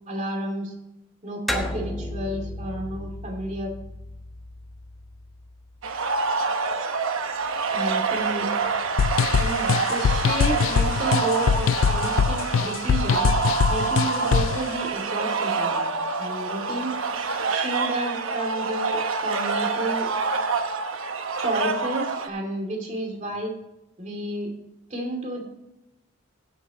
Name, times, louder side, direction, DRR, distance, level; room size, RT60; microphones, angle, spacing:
voice 1, 0.1-0.7 1.2-3.7 7.7-8.5 9.3-13.3 13.7-16.9 17.5-20.1 21.4-23.5 24.0-24.5 24.9-25.4, right 1 dB, 35° right, 1 dB, 2.7 m, -31 dB
sound 1, 1.5-6.2, left 1 dB, ahead, 1.0 m, -35 dB
sound 2, 5.8-22.3, right 4 dB, 80° right, 1.0 m, -26 dB
sound 3, 9.0-14.6, left 7 dB, 75° left, 0.3 m, -23 dB
16.0 x 8.0 x 3.0 m, 0.87 s
head